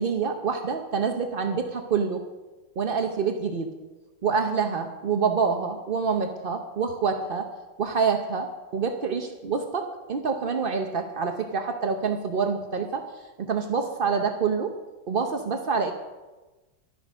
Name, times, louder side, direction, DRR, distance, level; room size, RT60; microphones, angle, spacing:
voice 1, 0.0-2.2 2.8-3.7 4.2-7.5 7.8-13.0 13.4-14.8 15.1-15.9, right 5 dB, 60° right, 5 dB, 0.5 m, -26 dB
12.0 x 11.0 x 6.3 m, 1.2 s
omnidirectional pair, 2.1 m